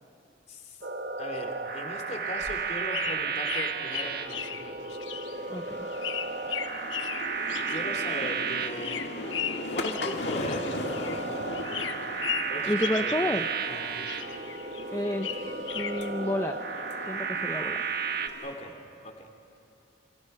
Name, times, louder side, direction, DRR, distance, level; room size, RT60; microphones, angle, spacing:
sound 1, 0.8-18.3, right 5 dB, 55° right, 1.5 m, -33 dB
voice 1, 1.2-5.0 7.7-9.0 9.6-11.3 12.5-13.3 13.7-13.9 18.4-18.7 19.0-19.3, left 1 dB, 40° left, 3 dB, 3.2 m, -39 dB
sound 2, 2.2-11.3 11.5-13.8 14.0-16.1, left 8 dB, 85° left, 1.1 m, -37 dB
sound 3, 5.1-18.6, left 2 dB, 65° left, 2.0 m, -39 dB
voice 2, 5.5-5.9 12.7-13.5 14.9-16.6 17.1-17.8, left 1 dB, 15° left, 4 dB, 0.7 m, -30 dB
29.5 x 27.0 x 5.7 m, 2.8 s
head